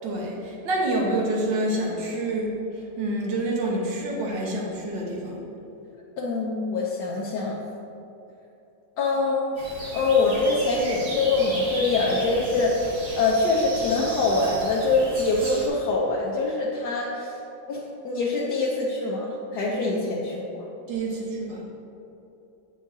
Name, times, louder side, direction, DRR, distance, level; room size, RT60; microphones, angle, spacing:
voice 1, 0.0-5.5 20.9-21.6, right 1 dB, 70° right, -2 dB, 1.8 m, -27 dB
voice 2, 6.2-7.6 9.0-9.4 9.9-12.9 13.1-17.3 17.7-20.7, left 3 dB, 65° left, -4 dB, 1.2 m, -24 dB
sound 1, 9.6-15.7, right 1 dB, 40° right, 1.2 m, -35 dB
8.5 x 6.2 x 2.7 m, 2.9 s
omnidirectional pair, 2.1 m